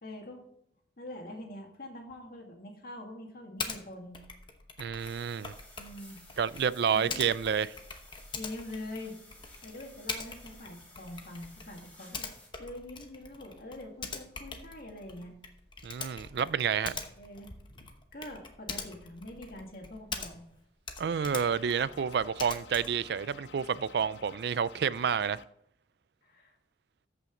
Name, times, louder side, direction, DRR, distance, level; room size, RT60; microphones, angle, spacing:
voice 1, 0.0-0.4 1.0-4.2 5.8-6.2 6.9-7.2 8.4-9.2 9.6-12.3 12.6-15.3 17.2-20.4 26.2-26.5, left 1 dB, 55° left, 2.0 m, -44 dB
Typing, 3.6-3.8 4.1-20.6 20.8-23.1, left 4 dB, 25° left, 1.0 m, -43 dB
voice 2, 4.8-5.5 6.4-7.8 15.8-16.9 21.0-25.4, right 7 dB, 60° right, 0.4 m, -29 dB
sound 1, 5.0-12.5, left 1 dB, 10° left, 2.9 m, -56 dB
sound 2, 21.1-25.5, left 5 dB, 70° left, 0.6 m, -52 dB
13.5 x 5.9 x 3.8 m
head